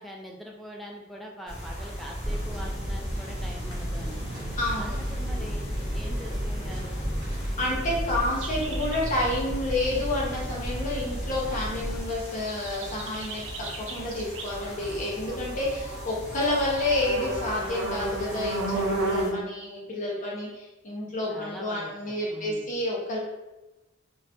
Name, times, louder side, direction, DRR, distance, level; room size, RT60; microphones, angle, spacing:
voice 1, 0.0-4.2 4.7-7.1 15.7-16.0 21.3-22.7, equal, ahead, -1 dB, 0.4 m, -43 dB
sound 1, 1.5-19.3, equal, 85° left, 1.2 m, -37 dB
sound 2, 2.2-12.0, equal, 15° right, 1.1 m, -34 dB
voice 2, 4.6-5.0 7.2-23.2, left 1 dB, 40° left, -4 dB, 0.6 m, -29 dB
sound 3, 8.4-9.3 12.5-19.4, right 2 dB, 65° right, 0.5 m, -33 dB
3.9 x 2.5 x 2.2 m, 1.0 s
head